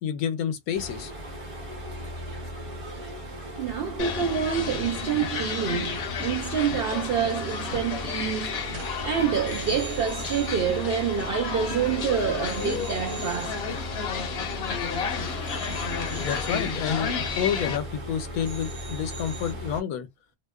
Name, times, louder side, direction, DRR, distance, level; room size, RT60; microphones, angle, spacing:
voice 1, 0.0-1.1 16.2-20.1, left 8 dB, 80° left, 1.0 m, -29 dB
sound 1, 0.7-19.8, equal, 30° right, 0.7 m, -37 dB
voice 2, 3.6-13.7, right 7 dB, 70° right, 0.5 m, -27 dB
sound 2, 4.0-17.8, left 6 dB, 60° left, 0.7 m, -32 dB
sound 3, 7.3-7.7 8.0-8.2 8.6-12.0 12.5-15.1 15.5-18.1 18.4-19.5, right 4 dB, 55° right, 1.1 m, -46 dB
2.7 x 2.0 x 2.2 m
omnidirectional pair, 1.5 m